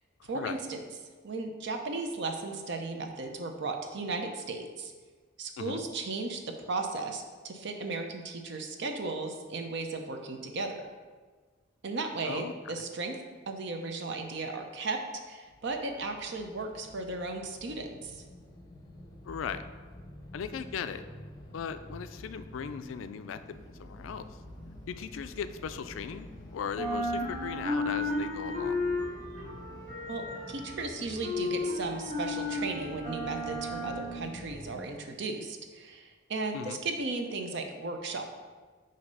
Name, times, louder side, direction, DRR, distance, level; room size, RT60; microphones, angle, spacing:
voice 1, 0.2-0.8 1.2-4.9 5.4-10.8 11.8-13.2 13.5-15.0 15.3-18.2 30.1-38.2, right 3 dB, 65° right, 4 dB, 0.7 m, -35 dB
voice 2, 12.2-12.8 19.2-19.7 20.3-21.0 21.5-24.3 24.9-28.8 36.5-36.8, left 7 dB, 80° left, 11 dB, 0.3 m, -38 dB
sound 1, 15.5-34.9, left 1 dB, 20° left, 0.7 m, -49 dB
sound 2, 23.5-26.4 26.6-34.8, left 2 dB, 45° right, 1.2 m, -34 dB
6.4 x 2.8 x 5.3 m, 1.4 s
head